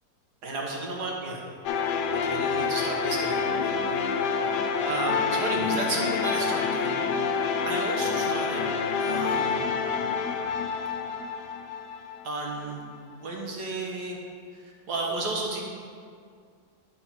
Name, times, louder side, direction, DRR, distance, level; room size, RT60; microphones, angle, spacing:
voice 1, 0.4-1.4 2.2-3.7 4.0-4.5 4.8-7.0 7.6-8.7 9.0-9.7 12.2-14.2 14.5-15.6, right 2 dB, 75° right, -1 dB, 1.7 m, -33 dB
sound 1, 1.7-12.6, left 5 dB, 75° left, 1.1 m, -27 dB
11.0 x 4.3 x 4.4 m, 2.2 s
omnidirectional pair, 1.8 m